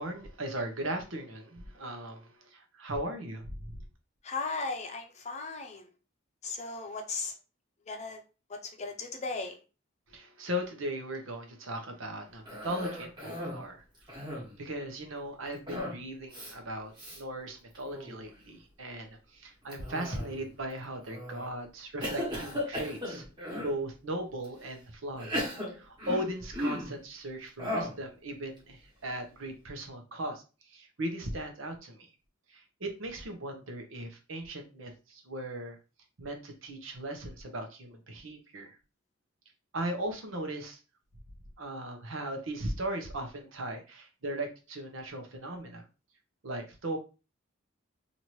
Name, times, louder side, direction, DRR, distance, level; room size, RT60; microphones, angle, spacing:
voice 1, 0.0-3.8 10.1-13.8 14.1-14.2 14.6-23.2 23.6-32.1 32.5-35.8 36.2-38.8 39.7-40.8 41.6-45.8 46.4-47.0, right 1 dB, 85° right, 4 dB, 0.8 m, -38 dB
voice 2, 4.2-5.9 6.4-7.3 7.9-8.2 8.5-9.6, left 3 dB, 35° left, 4 dB, 0.6 m, -36 dB
Cough, 12.5-13.6 14.0-14.6 15.7-16.0 16.3-16.5 17.0-17.2 17.7-18.2 19.7-20.5 21.1-21.5 22.0-23.8 24.4-24.5 25.2-27.0 27.6-28.0, left 1 dB, 25° right, 1.3 m, -36 dB
2.9 x 2.6 x 3.0 m, 0.32 s
head